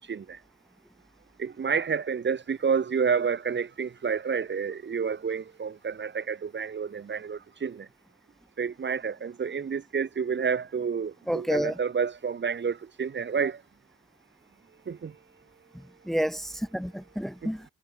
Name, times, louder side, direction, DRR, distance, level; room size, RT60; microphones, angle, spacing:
voice 1, 0.1-0.4 1.4-7.9 8.6-13.6 14.9-15.1 17.4-17.5, right 6 dB, 35° right, 1.6 m, -29 dB
voice 2, 11.3-11.7 16.1-17.6, equal, ahead, 1.4 m, -29 dB
cardioid pair, 90°, 30 cm